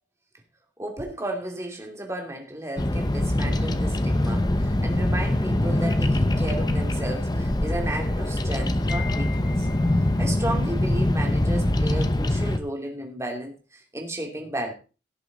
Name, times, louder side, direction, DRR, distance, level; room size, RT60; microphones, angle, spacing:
voice 1, 0.8-9.7 10.2-14.7, right 1 dB, 15° right, 2 dB, 2.6 m, -33 dB
Bird vocalization bird call bird song, 2.8-12.6, left 1 dB, 20° left, 0.9 m, -23 dB
Wind chime, 8.9-10.3, left 8 dB, 50° left, 1.3 m, -39 dB
17.0 x 6.9 x 4.1 m, 0.33 s
head